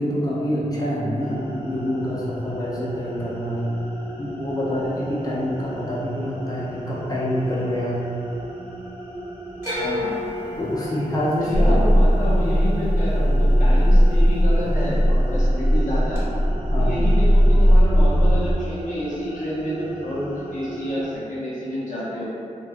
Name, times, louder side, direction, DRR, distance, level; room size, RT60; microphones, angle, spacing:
voice 1, 0.0-3.6 4.2-8.0 10.6-11.8 16.7-16.9, equal, 30° left, -7 dB, 0.5 m, -26 dB
sound 1, 1.2-21.2, right 1 dB, 40° right, 0.4 m, -37 dB
sound 2, 9.6-13.8 14.1-14.8 16.1-16.2, left 2 dB, 20° right, 0.9 m, -32 dB
voice 2, 9.8-10.2 11.4-16.3 16.8-22.2, left 1 dB, 80° left, -10 dB, 0.7 m, -29 dB
sound 3, 11.5-18.6, equal, 80° right, 0.7 m, -17 dB
2.3 x 2.2 x 2.6 m, 2.6 s
wide cardioid pair, 155°, 13 cm